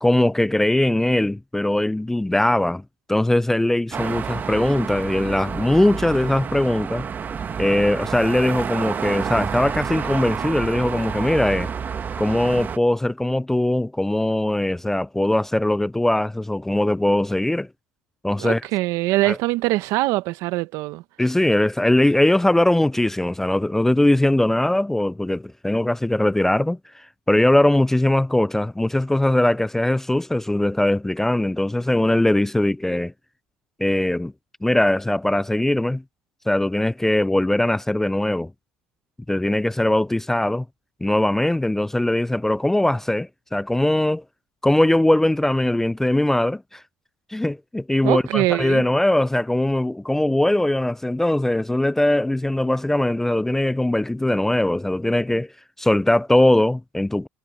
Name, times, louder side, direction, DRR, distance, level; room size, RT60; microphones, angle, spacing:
voice 1, 0.0-2.8 3.1-7.1 7.6-11.7 12.2-17.7 18.2-18.6 19.2-19.4 21.2-33.1 33.8-34.3 34.6-36.0 36.5-38.5 39.3-40.7 41.0-44.2 44.6-46.8 47.3-55.5 55.8-57.3, left 1 dB, 5° left, 0.3 m, -20 dB
sound 1, 3.9-12.8, right 6 dB, 35° right, 1.3 m, -29 dB
voice 2, 18.4-21.0 48.0-48.8, right 19 dB, 75° right, 0.9 m, -23 dB
supercardioid pair, 100°, 5 cm